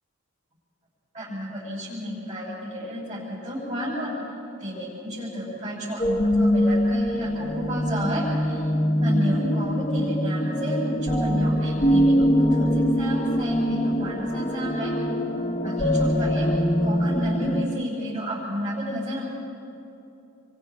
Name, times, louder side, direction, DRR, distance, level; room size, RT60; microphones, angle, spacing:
voice 1, 1.1-4.1 4.6-8.6 9.0-14.9 15.6-19.2, equal, 35° right, -9 dB, 7.8 m, -31 dB
sound 1, 6.0-17.6, equal, 30° left, 1.2 m, -23 dB
30.0 x 25.5 x 4.9 m, 2.8 s
head